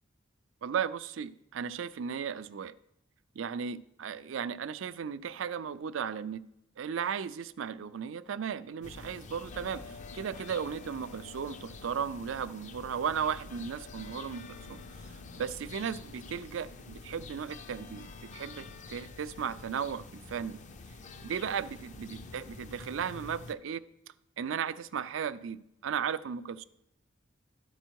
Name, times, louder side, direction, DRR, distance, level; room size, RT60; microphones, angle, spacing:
voice 1, 0.6-2.8 3.4-6.4 6.8-14.8 15.4-20.6 21.2-23.8 24.4-26.6, right 7 dB, 80° right, 15 dB, 0.4 m, -36 dB
sound 1, 8.8-23.5, left 3 dB, 40° left, 0.5 m, -47 dB
12.5 x 4.4 x 4.6 m, 0.81 s
head